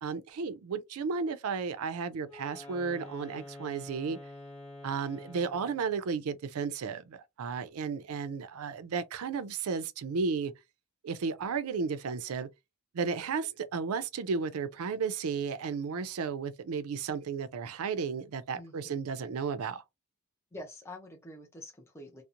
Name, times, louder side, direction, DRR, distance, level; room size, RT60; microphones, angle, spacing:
voice 1, 0.0-4.2 4.8-10.5 11.0-12.5 12.9-19.8, right 5 dB, 75° right, 0.4 m, -33 dB
Wind instrument woodwind instrument, 2.2-5.9, left 2 dB, 30° left, 1.0 m, -47 dB
voice 2, 18.5-19.0 20.5-22.2, left 1 dB, 10° left, 0.4 m, -46 dB
2.8 x 2.0 x 2.4 m
head